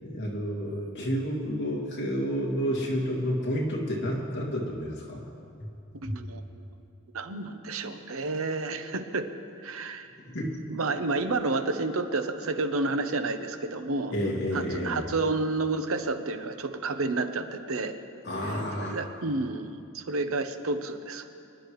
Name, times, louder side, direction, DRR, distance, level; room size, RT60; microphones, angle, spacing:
voice 1, 0.0-5.2 5.6-5.7 6.0-6.1 10.3-10.7 14.1-15.0 18.2-18.9, equal, 55° left, -2 dB, 2.3 m, -30 dB
voice 2, 6.0-6.4 7.1-9.3 9.6-10.1 10.7-14.1 14.5-18.0 18.8-21.3, right 3 dB, 90° right, 8 dB, 0.8 m, -30 dB
24.5 x 11.0 x 3.1 m, 2.6 s
head